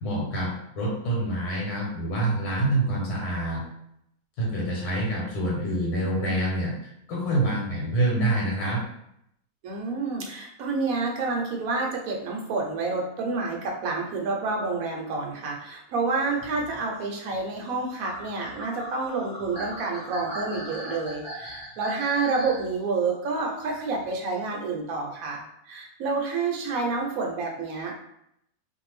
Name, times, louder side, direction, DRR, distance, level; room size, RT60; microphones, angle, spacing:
voice 1, 0.0-3.6 4.4-8.8, right 1 dB, 80° left, -4 dB, 1.4 m, -26 dB
voice 2, 9.6-27.9, right 3 dB, 70° right, 1 dB, 1.0 m, -29 dB
sound 1, 16.3-22.7 23.9-24.0, equal, 50° right, 0.3 m, -39 dB
2.6 x 2.5 x 3.1 m, 0.76 s
omnidirectional pair, 1.6 m